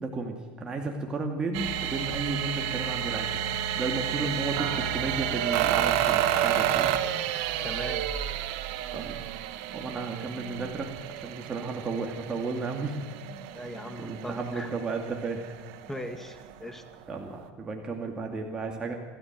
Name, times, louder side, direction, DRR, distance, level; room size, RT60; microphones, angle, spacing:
voice 1, 0.0-3.4 3.7-7.0 8.9-9.2 9.7-10.9 11.1-13.0 14.0-15.4 17.1-18.9, right 3 dB, 20° right, 2 dB, 2.5 m, -33 dB
sound 1, 1.5-16.5 17.1-17.2, right 10 dB, 70° right, 1.8 m, -30 dB
voice 2, 7.6-8.0 9.8-9.9 13.5-14.7 15.9-16.8, left 1 dB, 10° left, 8 dB, 1.9 m, -39 dB
27.5 x 13.0 x 7.6 m, 1.4 s
supercardioid pair, 125°, 4 cm